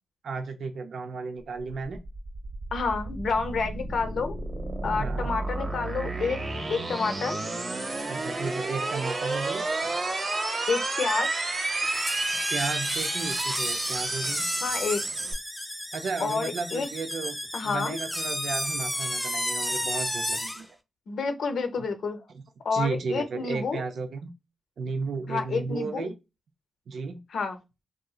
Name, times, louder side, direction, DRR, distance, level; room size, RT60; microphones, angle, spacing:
voice 1, 0.2-2.0 4.8-5.3 8.1-10.0 12.5-14.5 15.9-17.4 17.6-20.7 21.8-21.9 22.7-24.3 24.8-26.2 26.9-27.2, right 4 dB, 70° right, 0.4 m, -34 dB
sound 1, 1.6-15.3, right 2 dB, 50° right, 0.9 m, -31 dB
voice 2, 2.7-4.4 4.8-6.4 6.7-7.4 10.7-11.5 14.6-15.0 16.2-16.9 17.5-18.0 21.1-22.3 22.6-23.8 25.3-26.1 27.3-27.6, left 4 dB, 70° left, 0.6 m, -29 dB
sound 2, 11.8-20.7, left 1 dB, 10° left, 0.6 m, -32 dB
2.8 x 2.4 x 2.3 m
supercardioid pair, 50°, 0 cm